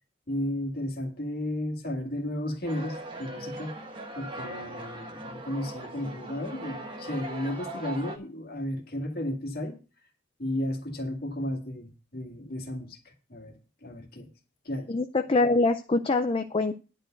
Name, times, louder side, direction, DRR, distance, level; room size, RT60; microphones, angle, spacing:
voice 1, 0.3-3.8 4.2-9.8 10.4-13.0 13.3-14.3 14.7-14.9, left 1 dB, 45° left, 2 dB, 2.0 m, -33 dB
sound 1, 2.6-8.2, right 1 dB, 20° right, 1.3 m, -40 dB
voice 2, 14.9-16.7, left 3 dB, 25° left, 7 dB, 0.4 m, -24 dB
10.5 x 4.5 x 7.7 m, 0.34 s
head